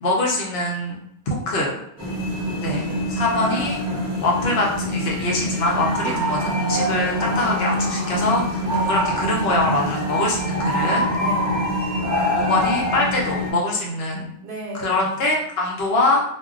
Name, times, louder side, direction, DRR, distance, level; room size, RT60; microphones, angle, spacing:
voice 1, 0.0-1.0 1.3-1.7 2.6-3.8 4.2-11.0 12.3-14.3 14.7-16.2, left 2 dB, 65° left, -2 dB, 0.8 m, -23 dB
voice 2, 1.3-1.7 2.0-3.1 6.0-6.3 8.7-9.1 11.1-11.8 14.4-15.3, right 1 dB, 60° right, -2 dB, 0.7 m, -37 dB
sound 1, 2.0-13.5, equal, 20° right, 0.6 m, -24 dB
2.2 x 2.1 x 3.6 m, 0.75 s
omnidirectional pair, 1.2 m